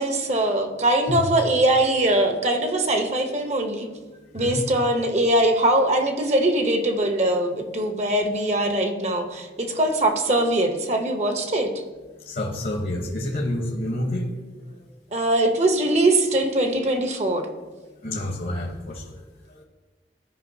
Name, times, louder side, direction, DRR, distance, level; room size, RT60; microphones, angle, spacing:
voice 1, 0.0-3.9 4.3-11.7 15.1-17.5, right 1 dB, 40° right, 5 dB, 0.7 m, -22 dB
voice 2, 4.3-4.7 12.2-14.3 14.7-14.8 18.0-19.6, left 1 dB, 55° left, 1 dB, 0.9 m, -29 dB
13.5 x 5.2 x 2.7 m, 1.3 s
head